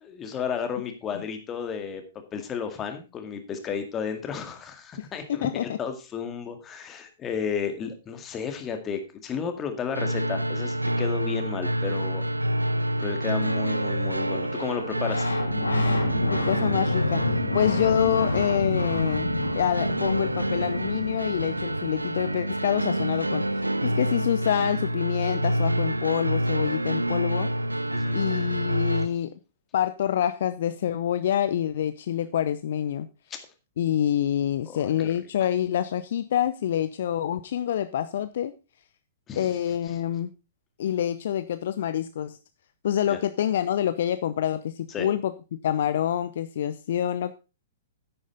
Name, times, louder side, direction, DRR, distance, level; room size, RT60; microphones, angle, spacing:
voice 1, 0.0-2.0 2.3-12.3 13.0-15.3 27.9-28.2 33.3-33.4 34.7-35.1 39.3-39.6 39.9-40.0 43.1-43.2 44.9-45.1, left 7 dB, 20° left, 6 dB, 2.0 m, -33 dB
voice 2, 5.0-5.8 16.3-17.2 17.5-27.5 28.1-29.3 29.7-33.1 33.8-38.5 39.4-40.3 40.8-42.4 42.8-45.3 45.6-47.3, left 10 dB, 55° left, 13 dB, 0.5 m, -27 dB
sound 1, 9.9-29.1, right 1 dB, 85° right, 0.5 m, -27 dB
sound 2, 14.5-25.0 27.0-27.1 27.3-29.1, left 2 dB, 80° left, 2.1 m, -31 dB
10.0 x 8.9 x 4.0 m, 0.30 s
figure-of-eight pair, 110°, 0 cm